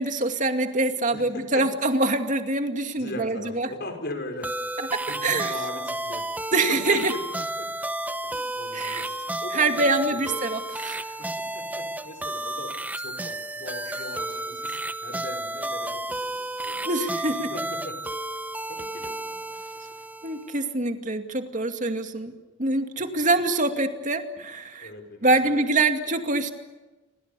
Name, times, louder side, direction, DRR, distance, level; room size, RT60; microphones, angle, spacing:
voice 1, 0.0-3.7 4.9-5.5 6.5-7.1 8.7-9.0 9.5-11.0 16.8-17.5 20.2-22.3 22.6-24.9 25.2-26.5, right 2 dB, 40° right, 6 dB, 2.4 m, -25 dB
voice 2, 1.1-1.7 3.0-4.6 5.1-7.2 7.6-7.7 8.2-9.1 9.4-10.4 11.2-16.8 17.2-18.0 18.6-19.9 23.1-23.2 24.8-25.8 26.1-26.2, left 1 dB, 55° left, 6 dB, 5.6 m, -40 dB
sound 1, 4.4-20.6, right 1 dB, 10° right, 0.9 m, -32 dB
28.5 x 25.0 x 7.0 m, 1.2 s
head